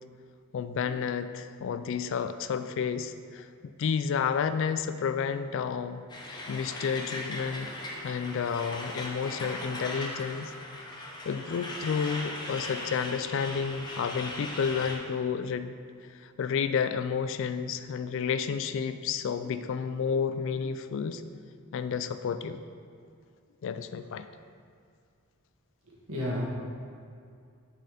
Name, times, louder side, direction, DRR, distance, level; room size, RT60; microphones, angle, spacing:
voice 1, 0.5-7.7 8.0-10.5 11.0-15.7 16.2-21.2 21.7-22.6 23.6-24.3, left 6 dB, 60° left, 11 dB, 0.3 m, -31 dB
Truck, 6.1-15.0, left 1 dB, 20° left, 0.7 m, -39 dB
voice 2, 25.9-26.4, left 1 dB, 90° right, -6 dB, 1.5 m, -32 dB
6.5 x 4.2 x 4.9 m, 2.3 s
head